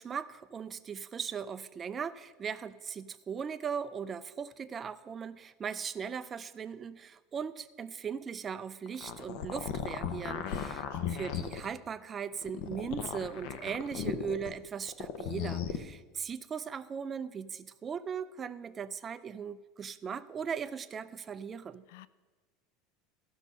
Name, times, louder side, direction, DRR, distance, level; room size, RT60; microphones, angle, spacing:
voice 1, 0.0-21.8, right 7 dB, 20° right, 13 dB, 0.4 m, -39 dB
sound 1, 8.9-11.7 12.4-14.5 14.9-15.8, left 8 dB, 55° left, 0.8 m, -36 dB
voice 2, 10.4-11.2 21.9-22.1, left 16 dB, 70° left, 18 dB, 0.3 m, -48 dB
14.5 x 6.3 x 5.4 m, 1.2 s
supercardioid pair, 160°, 0 cm